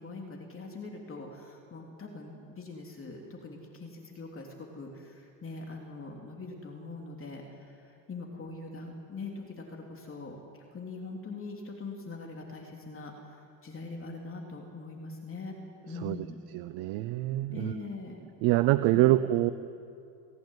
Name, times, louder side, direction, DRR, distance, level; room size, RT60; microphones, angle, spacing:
voice 1, 0.0-4.5 4.7-10.4 10.7-13.1 13.6-15.5 15.8-16.4 17.5-18.2 18.9-19.1, left 3 dB, 30° left, 1 dB, 3.3 m, -42 dB
voice 2, 15.9-16.3 16.5-17.8 18.4-19.5, right 16 dB, 60° right, 12 dB, 0.8 m, -26 dB
28.5 x 11.5 x 9.6 m, 2.6 s
hypercardioid pair, 80°, 43 cm